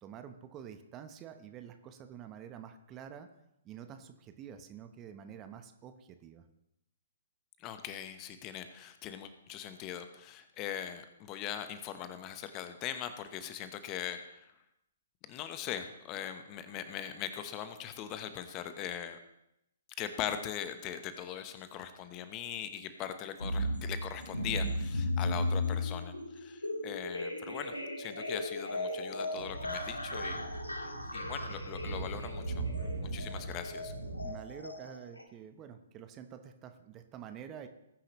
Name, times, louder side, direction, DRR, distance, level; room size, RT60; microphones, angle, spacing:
voice 1, 0.0-3.3 3.6-6.5 34.2-37.7, right 8 dB, 25° right, 8 dB, 1.0 m, -48 dB
voice 2, 7.6-14.5 15.2-19.2 20.0-30.4 30.7-32.6 33.1-33.9, left 9 dB, 25° left, 9 dB, 1.1 m, -41 dB
sound 1, 23.4-35.2, left 1 dB, 85° left, 1.9 m, -36 dB
Speech / Wind, 29.3-34.3, right 3 dB, 70° right, 5.8 m, -40 dB
19.5 x 10.0 x 3.2 m, 0.82 s
figure-of-eight pair, 125°, 0 cm